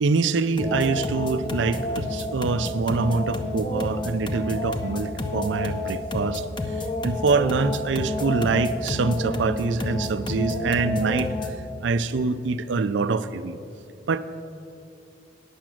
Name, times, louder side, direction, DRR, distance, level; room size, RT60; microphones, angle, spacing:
voice 1, 0.0-6.5 7.0-11.5 11.8-13.6 14.1-14.2, right 4 dB, 80° right, 12 dB, 0.4 m, -25 dB
sound 1, 0.6-11.7, left 1 dB, 25° left, 0.6 m, -29 dB
9.5 x 6.1 x 7.6 m, 2.7 s
head